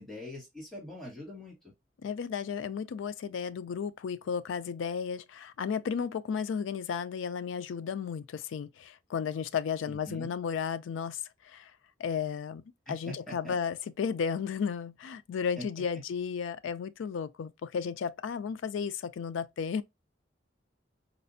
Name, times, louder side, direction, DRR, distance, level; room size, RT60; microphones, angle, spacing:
voice 1, 0.0-1.5 9.9-10.3 12.9-13.6 15.6-15.7, left 1 dB, ahead, 1.3 m, -43 dB
voice 2, 2.0-11.7 12.0-12.6 12.9-19.8, left 6 dB, 75° left, 0.3 m, -34 dB
4.3 x 2.4 x 2.5 m
head